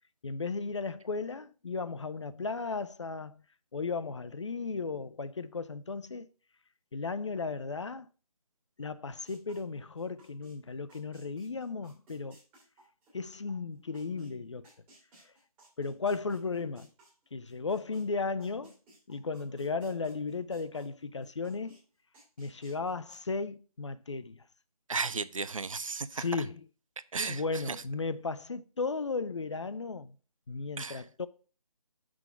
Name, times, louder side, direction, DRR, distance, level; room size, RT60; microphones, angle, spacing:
voice 1, 0.2-3.4 3.7-6.3 6.9-8.1 8.8-12.4 13.1-14.7 15.8-16.9 17.3-18.7 19.1-21.8 22.4-24.4 26.1-26.6 27.3-30.1 30.5-31.3, left 4 dB, 50° left, 0.4 m, -35 dB
sound 1, 9.3-10.5 10.9-14.3 14.6-18.0 18.4-20.9 21.2-21.8 22.1-23.2, right 1 dB, 10° right, 2.0 m, -59 dB
voice 2, 24.9-26.2 27.1-27.8 30.8-31.0, right 4 dB, 60° right, 0.5 m, -34 dB
6.1 x 3.7 x 5.7 m
figure-of-eight pair, 150°, 19 cm